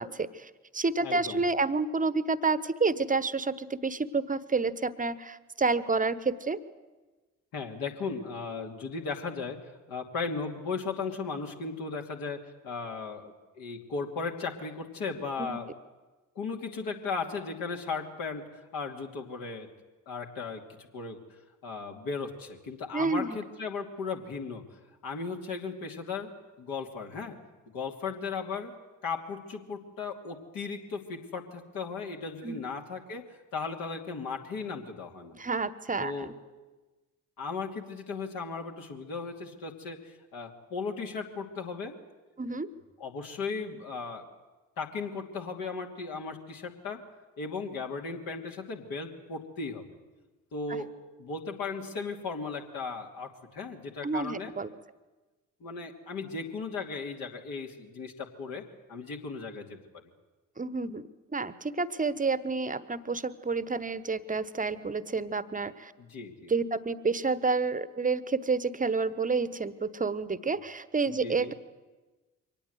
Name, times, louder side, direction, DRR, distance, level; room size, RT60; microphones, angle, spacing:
voice 1, 0.0-6.6 15.4-15.6 22.9-23.4 32.4-32.6 35.3-36.3 42.4-42.7 54.0-54.7 60.6-61.0 61.3-65.9 66.5-71.5, right 4 dB, 20° right, 16 dB, 1.1 m, -29 dB
voice 2, 1.0-1.4 7.5-9.6 9.9-15.7 16.4-19.7 20.1-21.2 21.6-24.6 25.0-27.4 27.7-28.7 29.0-33.3 33.5-35.3 36.0-36.3 37.4-41.9 43.0-44.3 44.8-47.0 47.4-49.9 50.5-50.9 51.2-54.5 55.6-58.6 58.9-59.8 66.0-66.5 71.1-71.5, left 4 dB, 55° left, 2 dB, 2.7 m, -36 dB
24.0 x 18.5 x 8.0 m, 1.2 s
figure-of-eight pair, 45°, 40 cm